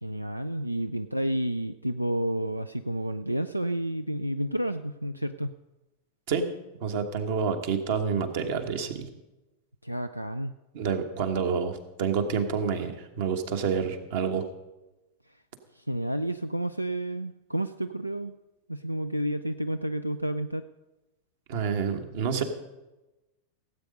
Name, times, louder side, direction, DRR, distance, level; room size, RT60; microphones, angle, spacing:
voice 1, 0.0-5.5 9.8-10.5 15.8-18.3 18.7-20.7, right 1 dB, 90° right, 11 dB, 0.3 m, -30 dB
voice 2, 6.8-9.1 10.7-14.5 21.5-22.4, right 6 dB, 50° right, 7 dB, 1.3 m, -28 dB
17.0 x 8.2 x 5.3 m, 1.0 s
figure-of-eight pair, 90°, 0 cm